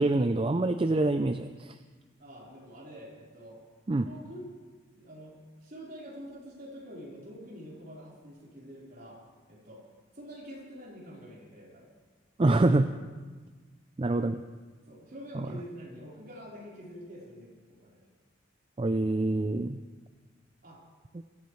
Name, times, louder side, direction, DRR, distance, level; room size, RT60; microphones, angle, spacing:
voice 1, 0.0-1.8 3.9-4.1 12.4-12.9 14.0-14.4 15.3-15.5 18.8-19.8, right 2 dB, 25° right, 9 dB, 0.4 m, -26 dB
voice 2, 2.2-3.6 4.0-4.5 4.9-5.4 5.6-9.2 9.5-9.8 10.1-11.9 14.9-17.5 17.8-18.0 20.6-20.8, equal, 45° right, -5 dB, 4.2 m, -46 dB
23.5 x 13.5 x 3.2 m, 1.4 s
head